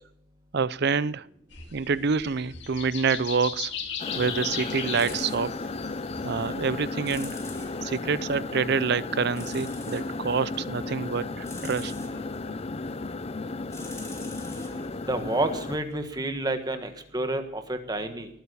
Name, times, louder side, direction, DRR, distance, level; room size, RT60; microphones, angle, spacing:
voice 1, 0.5-1.3 1.7-3.7 4.2-5.6 6.2-7.4 7.8-11.9, right 5 dB, 55° right, 0.5 m, -27 dB
sound 1, 1.5-7.9, left 7 dB, 60° left, 2.3 m, -37 dB
sound 2, 4.0-15.8, left 3 dB, 30° left, 0.5 m, -34 dB
sound 3, 4.0-16.7, left 1 dB, 15° left, 2.2 m, -46 dB
voice 2, 15.1-18.3, right 2 dB, 20° right, 1.6 m, -29 dB
19.5 x 9.0 x 6.9 m
head